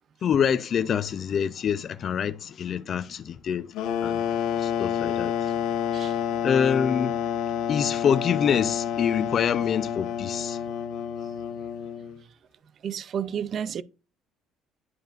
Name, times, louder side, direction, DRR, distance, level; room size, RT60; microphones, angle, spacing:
voice 1, 0.2-3.7 4.0-4.2 4.6-5.3 6.4-7.2 7.7-10.6, left 7 dB, 35° left, 0.4 m, -25 dB
sound 1, 3.7-12.2, left 9 dB, 65° left, 1.2 m, -29 dB
voice 2, 12.8-13.8, right 8 dB, 40° right, 0.4 m, -31 dB
11.0 x 5.2 x 2.5 m
cardioid pair, 165°, 0 cm